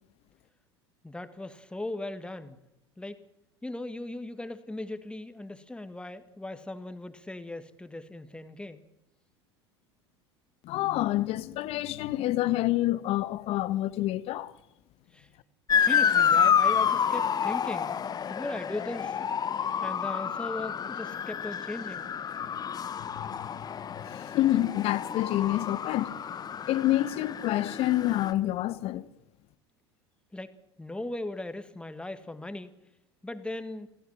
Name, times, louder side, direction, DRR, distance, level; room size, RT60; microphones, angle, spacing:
voice 1, 1.0-2.6 3.0-3.2 3.6-8.8 15.1-15.3 15.8-18.0 18.3-19.2 19.8-22.1 30.3-30.5 30.8-32.7 33.2-33.9, left 2 dB, 5° left, 1.9 m, -38 dB
voice 2, 10.6-14.5 23.2-23.3 24.0-26.1 26.7-29.1, left 15 dB, 45° left, 1.3 m, -27 dB
Motor vehicle (road) / Siren, 15.7-28.3, left 8 dB, 30° left, 1.2 m, -29 dB
26.0 x 17.0 x 7.5 m
figure-of-eight pair, 75°, 14 cm